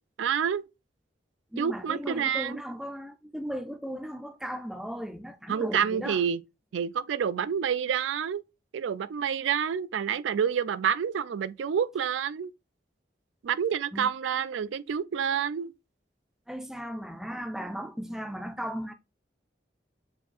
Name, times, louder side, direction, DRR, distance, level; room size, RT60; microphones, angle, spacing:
voice 1, 0.2-0.6 1.6-2.6 5.5-6.4 6.7-8.4 8.7-12.5 13.4-15.7, right 7 dB, 85° right, 0.3 m, -28 dB
voice 2, 1.5-6.2 13.9-14.1 16.5-18.9, equal, ahead, 0.3 m, -36 dB
6.9 x 2.7 x 2.5 m
head